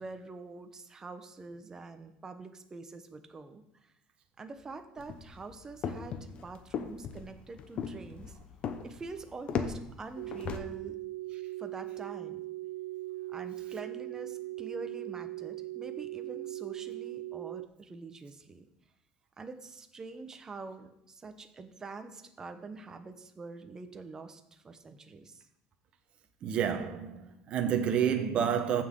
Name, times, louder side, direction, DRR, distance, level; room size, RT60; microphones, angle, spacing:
voice 1, 0.0-3.6 4.4-8.3 8.8-11.0 11.6-12.4 13.3-18.7 19.4-25.4, right 4 dB, 20° right, 1.0 m, -45 dB
sound 1, 5.0-10.6, left 6 dB, 45° left, 1.0 m, -37 dB
sound 2, 10.2-17.7, right 18 dB, 85° right, 0.4 m, -40 dB
voice 2, 26.4-28.8, right 8 dB, 45° right, 1.2 m, -29 dB
15.0 x 5.9 x 3.8 m
supercardioid pair, 115°, 3 cm